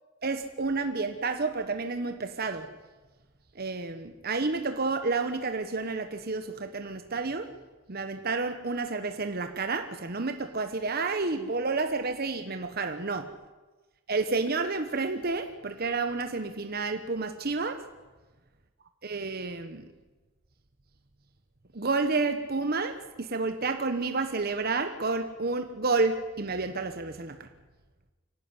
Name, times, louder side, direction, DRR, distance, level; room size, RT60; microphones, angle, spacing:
voice 1, 0.2-2.7 3.5-7.5 7.9-13.3 14.1-17.9 19.0-19.8 21.7-27.5, right 3 dB, 50° right, 7 dB, 1.2 m, -30 dB
24.5 x 17.0 x 9.8 m, 1.3 s
head